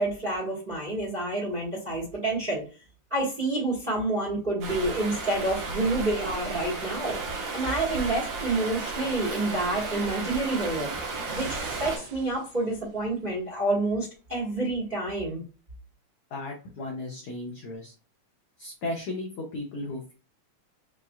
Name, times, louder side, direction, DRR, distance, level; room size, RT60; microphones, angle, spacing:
voice 1, 0.0-2.6 3.1-11.0 11.3-15.4, right 2 dB, 25° right, -4 dB, 1.1 m, -28 dB
Stream, 4.6-12.0, right 3 dB, 90° right, 2.9 m, -34 dB
sound 1, 10.0-13.2 14.1-14.2, right 5 dB, 70° right, 1.7 m, -45 dB
voice 2, 16.3-17.9 18.6-20.1, left 2 dB, 75° left, -1 dB, 1.3 m, -35 dB
7.3 x 2.5 x 2.3 m, 0.35 s
omnidirectional pair, 3.6 m